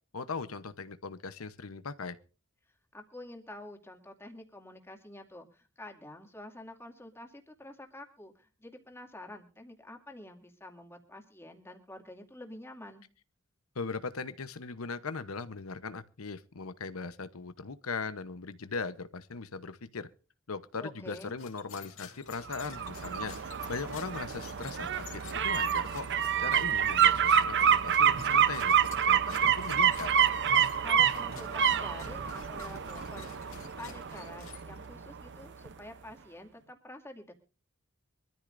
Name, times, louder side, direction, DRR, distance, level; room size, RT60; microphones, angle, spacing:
voice 1, 0.1-2.2 13.7-20.1 20.5-23.3 23.7-26.1 26.4-30.1, left 4 dB, 85° left, 1.0 m, -39 dB
voice 2, 2.9-13.0 20.8-21.4 30.8-33.3 33.6-37.3, left 1 dB, 10° left, 2.4 m, -48 dB
sound 1, 21.1-35.0, left 7 dB, 70° left, 2.9 m, -51 dB
sound 2, 22.5-35.3 35.7-35.8, right 8 dB, 60° right, 0.8 m, -27 dB
24.0 x 13.5 x 2.6 m
head